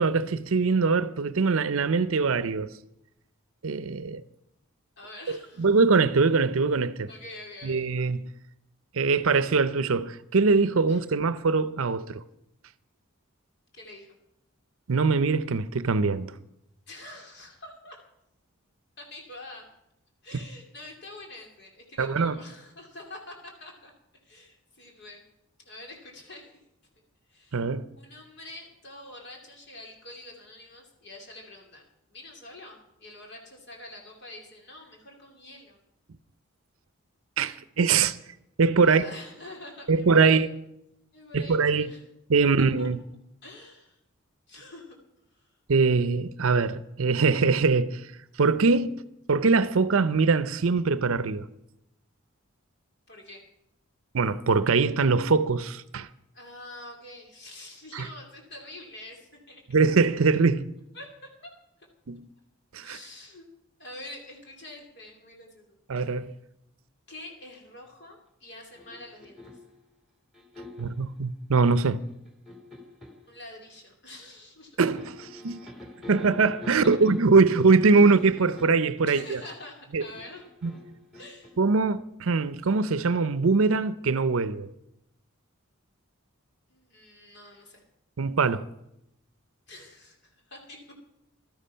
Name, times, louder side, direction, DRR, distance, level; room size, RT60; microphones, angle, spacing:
voice 1, 0.0-2.7 3.6-4.2 5.3-7.1 7.6-8.3 8.9-12.2 14.9-16.3 22.0-22.4 27.5-27.9 37.4-38.2 38.6-39.0 39.9-40.5 41.3-41.9 42.3-43.0 45.7-48.1 48.4-49.0 49.3-51.5 54.1-56.1 57.9-58.1 59.7-60.7 62.1-62.3 62.7-63.0 65.9-66.3 70.8-72.1 74.8-75.7 76.1-79.4 79.9-80.0 80.6-80.7 81.6-84.7 88.2-88.7, right 4 dB, 75° right, 0.6 m, -23 dB
voice 2, 5.0-5.7 7.1-7.8 10.9-11.0 13.7-14.1 16.9-18.0 19.0-19.6 20.2-23.9 24.2-25.2 25.6-26.5 27.3-27.6 28.0-35.8 38.8-40.5 41.1-42.0 42.8-42.9 43.4-44.0 44.5-45.0 45.3-45.5 53.1-53.4 56.3-59.6 60.9-61.1 61.4-61.5 61.8-61.9 62.8-63.5 63.8-65.8 67.1-69.4 73.3-74.8 79.0-80.4 81.2-81.5 86.7-87.8 89.7-90.8, left 1 dB, 50° left, 2.8 m, -46 dB
sound 1, 68.7-69.7 70.3-71.0 72.0-73.2 74.8-77.5 78.4-78.9 80.0-81.5, left 1 dB, ahead, 2.6 m, -44 dB
15.5 x 12.5 x 5.6 m
head